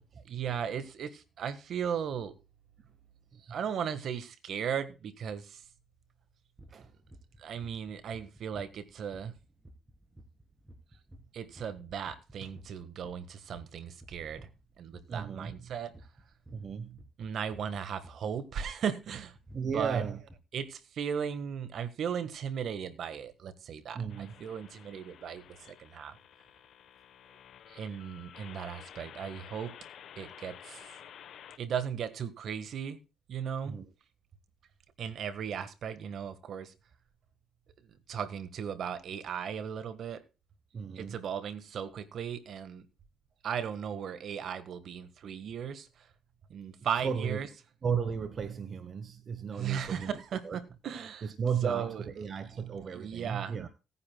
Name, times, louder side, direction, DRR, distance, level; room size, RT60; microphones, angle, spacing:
voice 1, 0.2-2.3 3.5-5.6 7.4-9.3 11.3-14.5 14.8-15.9 17.2-20.0 20.5-26.2 27.7-29.7 30.2-30.8 31.6-33.0 33.3-33.8 35.0-36.7 38.1-40.2 40.9-42.8 43.4-45.9 46.5-47.5 49.5-51.3 51.6-52.0 52.9-53.6, right 8 dB, 65° right, 1.5 m, -36 dB
sound 1, 6.6-18.9 19.1-19.8 20.2-20.4, right 1 dB, 15° right, 3.5 m, -53 dB
voice 2, 15.1-15.5 16.5-17.0 19.5-20.2 23.9-24.3 33.7-33.9 40.7-41.1 47.0-47.4 47.8-50.2 50.4-50.6 51.2-53.7, right 6 dB, 50° right, 1.1 m, -34 dB
sound 2, 24.1-31.6, left 9 dB, 70° left, 1.1 m, -52 dB
18.5 x 9.8 x 2.3 m
cardioid pair, 90°, 0 cm